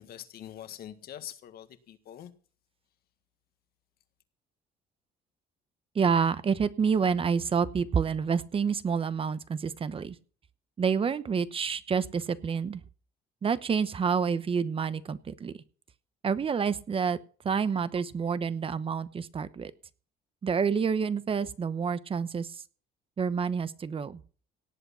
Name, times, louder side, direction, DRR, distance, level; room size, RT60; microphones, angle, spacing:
voice 1, 0.0-2.3, left 11 dB, 65° left, 1.7 m, -44 dB
voice 2, 5.9-10.1 10.8-12.8 13.4-15.6 16.2-17.2 17.4-19.7 20.4-22.6 23.2-24.2, right 6 dB, 35° right, 0.9 m, -28 dB
17.5 x 8.1 x 5.7 m
cardioid pair, 110°, 17 cm